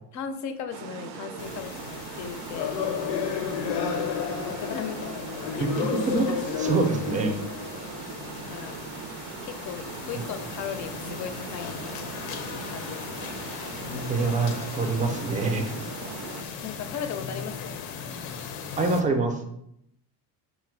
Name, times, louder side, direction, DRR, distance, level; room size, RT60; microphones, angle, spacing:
voice 1, 0.1-2.7 3.6-3.9 4.4-5.8 6.3-6.4 8.5-8.8 9.4-11.8 12.7-13.0 16.6-17.8, left 7 dB, 45° left, 8 dB, 0.5 m, -37 dB
Water, 0.7-16.4, right 7 dB, 90° right, 0.5 m, -40 dB
sound 1, 1.4-19.0, left 6 dB, 90° left, 0.6 m, -34 dB
voice 2, 5.6-6.3 6.6-7.3 10.1-10.2 14.1-15.6 18.8-19.4, right 3 dB, 20° right, 4 dB, 0.4 m, -25 dB
4.1 x 2.1 x 4.5 m, 0.76 s
cardioid pair, 140°, 40 cm